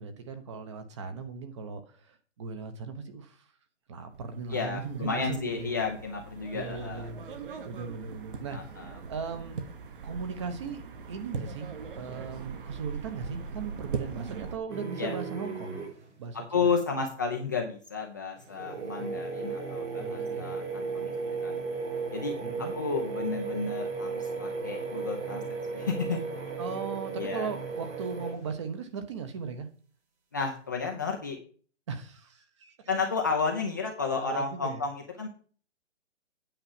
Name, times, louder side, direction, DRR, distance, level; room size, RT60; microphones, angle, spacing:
voice 1, 0.0-3.5 3.9-5.7 6.5-7.2 7.6-8.6 9.1-9.6 10.0-10.8 11.1-15.8 16.2-16.7 20.0-20.5 22.4-22.7 26.6-29.7 31.9-32.9 34.2-34.8, right 5 dB, 25° right, 9 dB, 0.9 m, -38 dB
sound 1, 4.1-14.6, right 5 dB, 45° right, 1.3 m, -41 dB
voice 2, 4.5-7.1 8.5-9.0 15.0-15.2 16.5-21.1 21.4-21.6 22.1-25.4 25.7-26.2 27.1-27.5 30.3-31.4 32.9-35.3, left 5 dB, 15° left, 1 dB, 0.5 m, -32 dB
sound 2, 14.7-16.1 18.4-28.6, right 4 dB, 65° right, 5.2 m, -35 dB
8.9 x 4.8 x 7.2 m, 0.41 s
hypercardioid pair, 160°, 37 cm